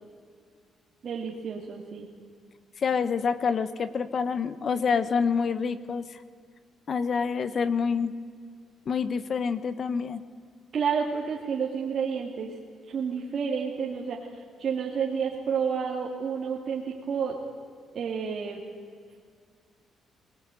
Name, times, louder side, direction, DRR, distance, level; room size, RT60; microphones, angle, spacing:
voice 1, 1.0-2.0 10.7-12.5 12.9-14.2 14.6-17.4 17.9-18.6, right 6 dB, 50° right, -3 dB, 2.7 m, -30 dB
voice 2, 2.8-6.2 6.9-8.1 8.9-10.2, left 6 dB, 40° left, 14 dB, 1.2 m, -27 dB
23.5 x 20.5 x 9.2 m, 2.1 s
cardioid pair, 140°, 0 cm